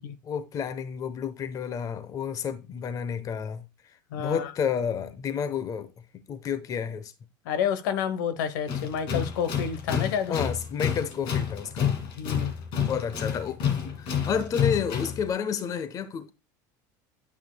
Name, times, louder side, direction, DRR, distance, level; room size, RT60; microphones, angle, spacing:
voice 1, 0.2-5.9 6.3-7.1 10.3-12.1 12.9-13.6 14.0-16.3, left 7 dB, 35° left, 0.9 m, -31 dB
voice 2, 4.1-4.5 7.4-10.3 12.2-12.5, left 8 dB, 80° left, 1.0 m, -29 dB
Tools, 8.7-15.3, left 8 dB, 55° left, 2.3 m, -29 dB
9.1 x 5.7 x 2.2 m
supercardioid pair, 115°, 10 cm